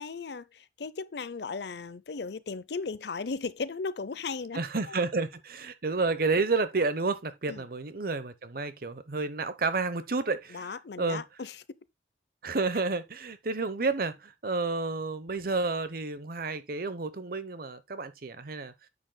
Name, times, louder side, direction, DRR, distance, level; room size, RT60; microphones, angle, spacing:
voice 1, 0.0-4.6 4.9-5.0 7.5-7.6 10.5-11.6, left 4 dB, 65° left, 0.6 m, -36 dB
voice 2, 4.5-10.7 11.0-11.2 12.4-18.7, right 3 dB, 50° right, 0.9 m, -30 dB
9.6 x 7.8 x 2.2 m
head